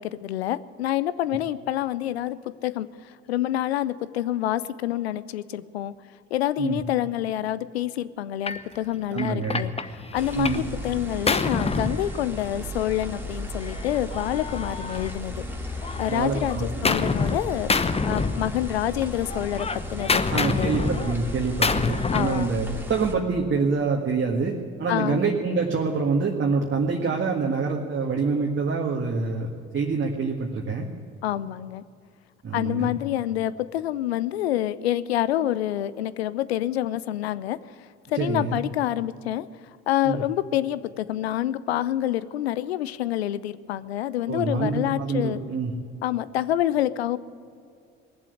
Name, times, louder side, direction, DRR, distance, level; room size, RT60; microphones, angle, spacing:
voice 1, 0.0-5.9 6.3-9.7 10.1-17.7 18.0-21.1 22.1-22.5 24.9-25.2 31.2-31.8 32.5-37.6 38.1-39.5 39.9-45.4 46.0-47.2, left 13 dB, 85° left, 16 dB, 0.5 m, -27 dB
Gunshot gunfire, 8.5-8.7 9.2-10.7 11.0-12.7 13.6-15.5 15.8-17.4 17.7-18.9 19.2-22.4, left 4 dB, 20° left, 0.9 m, -27 dB
voice 2, 9.1-9.6 10.3-10.6 16.1-16.8 20.3-29.5 29.7-30.9 32.4-32.9 38.1-38.6 40.0-40.2 44.3-45.7, right 4 dB, 40° right, 0 dB, 1.8 m, -26 dB
sound 1, 10.2-23.1, left 1 dB, 5° right, 2.6 m, -35 dB
19.0 x 7.6 x 9.9 m, 2.3 s
hypercardioid pair, 50°, 31 cm